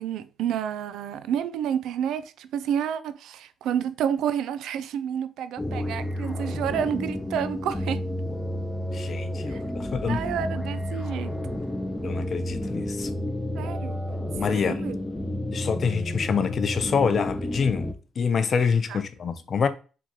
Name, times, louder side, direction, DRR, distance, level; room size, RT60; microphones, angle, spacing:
voice 1, 0.0-8.0 9.5-9.6 10.1-11.3 13.5-14.0 14.5-15.0 18.9-19.0, right 9 dB, 80° right, 0.4 m, -29 dB
sound 1, 5.6-17.9, left 1 dB, 10° left, 0.6 m, -31 dB
voice 2, 8.9-10.3 12.0-13.1 14.4-14.8 15.5-19.7, left 6 dB, 50° left, 0.6 m, -26 dB
4.6 x 3.6 x 2.9 m
cardioid pair, 90°, 0 cm